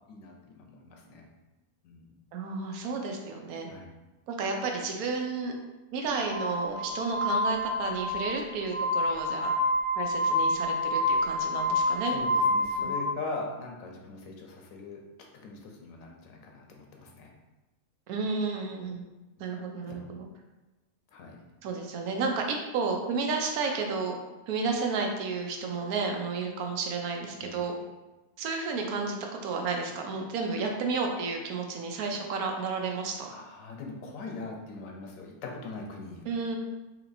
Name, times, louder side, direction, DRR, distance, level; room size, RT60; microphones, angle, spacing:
voice 1, 0.1-1.3 1.8-2.1 3.7-3.9 10.3-10.5 12.0-15.0 15.3-17.3 20.0-20.1 21.1-21.4 27.4-27.9 33.3-36.2, left 3 dB, 70° left, 1 dB, 1.0 m, -41 dB
voice 2, 2.3-3.7 4.3-5.5 5.9-9.5 10.0-12.2 12.8-13.0 18.1-19.0 19.4-20.3 21.6-24.2 24.5-27.7 28.4-33.3 36.3-36.6, right 4 dB, 80° right, 2 dB, 1.0 m, -32 dB
Glass, 6.3-13.0, left 1 dB, 55° right, 0.7 m, -28 dB
3.9 x 2.9 x 2.6 m, 1.1 s
omnidirectional pair, 1.6 m